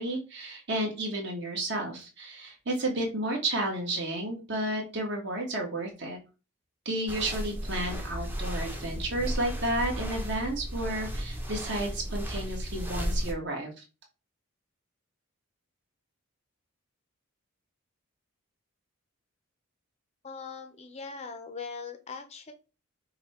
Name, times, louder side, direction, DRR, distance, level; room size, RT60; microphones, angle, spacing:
voice 1, 0.0-6.2 6.8-13.8, right 1 dB, 50° right, 0 dB, 1.5 m, -32 dB
sound 1, 7.1-13.3, equal, 10° right, 0.6 m, -34 dB
voice 2, 20.2-22.5, left 5 dB, 30° left, 7 dB, 0.5 m, -40 dB
5.6 x 2.2 x 4.2 m, 0.32 s
head